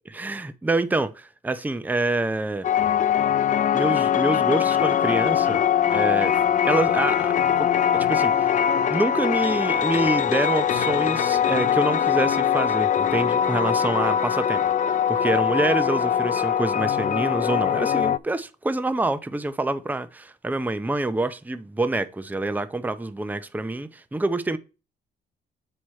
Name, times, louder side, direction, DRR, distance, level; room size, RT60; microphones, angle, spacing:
voice 1, 0.1-2.7 3.7-5.6 5.9-8.6 8.9-14.6 15.1-24.6, right 2 dB, 10° right, 0.6 m, -26 dB
sound 1, 2.6-18.2, left 9 dB, 40° left, 0.4 m, -22 dB
7.6 x 4.8 x 4.3 m
cardioid pair, 90°, 20 cm